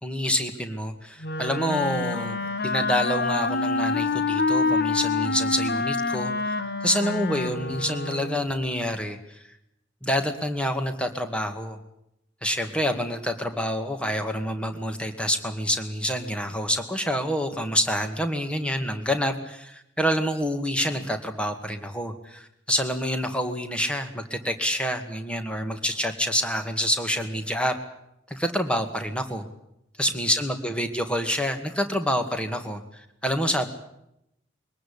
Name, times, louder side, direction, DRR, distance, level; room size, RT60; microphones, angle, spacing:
voice 1, 0.0-6.5 6.8-9.4 10.0-11.8 12.4-27.8 28.3-29.5 30.0-32.8 33.2-33.7, equal, 5° left, 7 dB, 2.2 m, -27 dB
Wind instrument woodwind instrument, 1.2-8.6, left 3 dB, 55° left, 1.3 m, -27 dB
23.5 x 19.0 x 8.7 m, 0.81 s
head